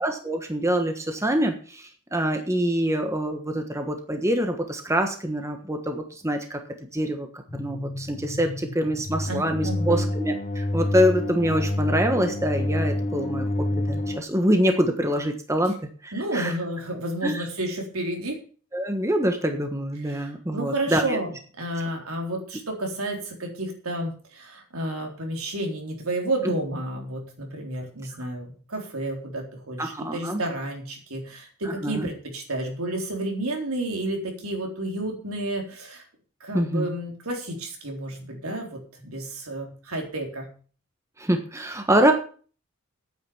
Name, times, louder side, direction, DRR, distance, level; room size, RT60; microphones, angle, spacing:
voice 1, 0.0-6.6 6.9-7.3 7.5-13.5 13.9-15.8 16.0-16.5 17.2-17.5 18.7-21.2 29.8-30.4 31.7-32.1 36.5-36.9 41.2-42.1, equal, 15° right, 5 dB, 1.3 m, -25 dB
sound 1, 7.5-14.2, left 1 dB, 35° left, 0.9 m, -28 dB
voice 2, 9.3-10.1 16.1-18.4 20.0-36.0 36.4-40.5, right 1 dB, 75° right, 2 dB, 3.9 m, -31 dB
9.3 x 9.1 x 7.1 m, 0.41 s
head